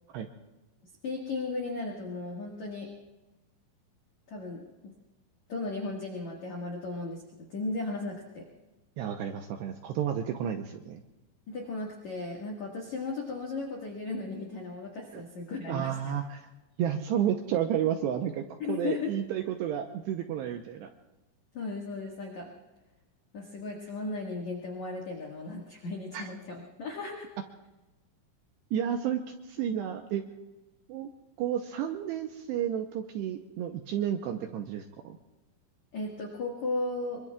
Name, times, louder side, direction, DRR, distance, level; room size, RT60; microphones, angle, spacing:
voice 1, 1.0-2.9 4.3-4.9 5.5-8.4 11.5-16.1 18.6-19.1 21.5-22.5 23.3-27.3 35.9-37.2, left 3 dB, 55° left, -1 dB, 2.2 m, -36 dB
voice 2, 9.0-11.0 15.1-15.2 15.7-16.5 16.8-20.9 26.1-26.3 28.7-30.2 30.9-31.1 31.4-35.2, right 9 dB, 80° right, 4 dB, 2.5 m, -31 dB
25.0 x 24.0 x 2.4 m, 1.1 s
omnidirectional pair, 5.7 m